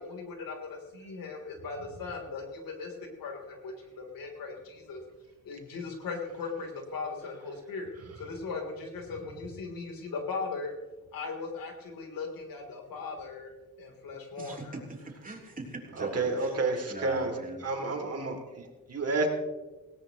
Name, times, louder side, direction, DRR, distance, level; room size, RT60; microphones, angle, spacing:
voice 1, 0.0-2.9 3.2-5.0 5.4-7.9 8.2-10.7 11.1-13.5 13.8-14.8, left 4 dB, 85° left, 2 dB, 3.6 m, -38 dB
voice 2, 14.4-16.5 16.9-17.6, right 3 dB, 25° right, 0 dB, 3.4 m, -41 dB
voice 3, 15.9-17.3 17.6-19.3, right 3 dB, 45° right, 3 dB, 2.9 m, -30 dB
18.5 x 18.0 x 3.1 m, 1.2 s
cardioid pair, 105°, 34 cm